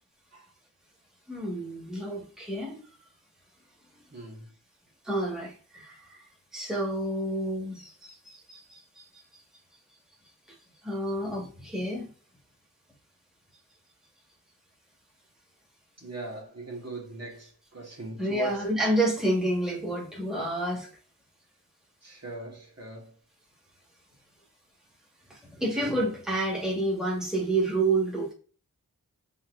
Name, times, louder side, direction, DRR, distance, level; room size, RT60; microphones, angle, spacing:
voice 1, 1.3-2.8 5.1-6.0 6.5-8.2 8.5-8.8 10.8-12.1 18.2-20.9 25.3-28.3, right 1 dB, ahead, 1.9 m, -29 dB
voice 2, 4.1-4.5 16.0-18.7 22.0-23.1, right 2 dB, 45° right, 1.7 m, -40 dB
5.6 x 3.0 x 2.6 m
cardioid pair, 50°, 35 cm